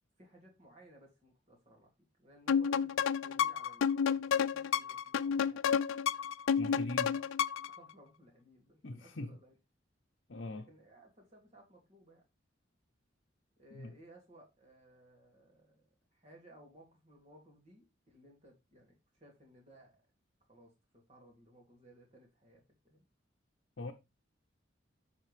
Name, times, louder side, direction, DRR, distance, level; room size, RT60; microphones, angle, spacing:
voice 1, 0.2-1.9 2.2-5.8 7.1-7.2 7.7-9.5 10.7-12.2 13.6-15.8 16.1-19.9 20.5-23.0, right 1 dB, 35° right, 2.8 m, -60 dB
sound 1, 2.5-7.8, left 7 dB, 90° left, 0.4 m, -31 dB
voice 2, 6.6-7.1 8.8-9.3 10.3-10.7 13.7-13.9 23.8-23.9, left 2 dB, 65° left, 0.8 m, -41 dB
7.6 x 5.5 x 3.4 m
head